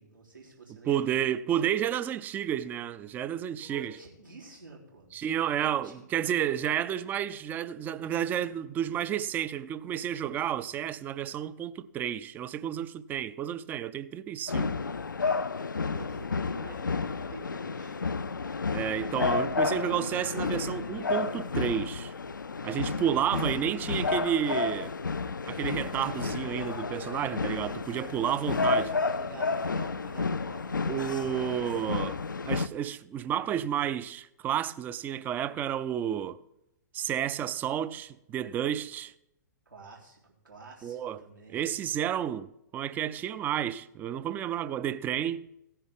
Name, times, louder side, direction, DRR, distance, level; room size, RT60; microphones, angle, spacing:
voice 1, 0.0-1.1 1.5-1.7 3.6-5.1 5.5-6.3 15.9-18.0 28.8-31.0 31.5-31.7 39.7-41.6, right 3 dB, 85° right, 3.6 m, -49 dB
voice 2, 0.9-4.0 5.1-14.7 18.7-22.1 22.6-24.9 25.5-28.9 30.9-32.2 32.5-36.4 36.9-39.1 40.8-41.3 41.5-45.4, right 10 dB, 15° right, 0.4 m, -31 dB
sound 1, 14.5-32.7, left 4 dB, 80° left, 0.4 m, -31 dB
16.0 x 10.0 x 3.6 m
figure-of-eight pair, 115°, 10 cm